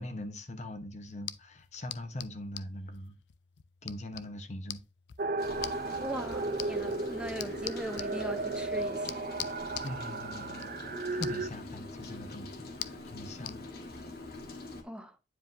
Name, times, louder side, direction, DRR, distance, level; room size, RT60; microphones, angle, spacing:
voice 1, 0.0-3.2 3.8-4.8 9.8-13.7, left 1 dB, 40° left, 0.9 m, -42 dB
sound 1, 1.1-13.6, left 13 dB, 80° left, 0.5 m, -46 dB
sound 2, 5.2-11.5, right 3 dB, 50° right, 0.4 m, -35 dB
Rain, 5.4-14.8, left 2 dB, 60° left, 1.4 m, -44 dB
voice 2, 6.0-9.2 14.8-15.2, right 1 dB, 5° right, 0.6 m, -40 dB
9.6 x 4.9 x 2.6 m
head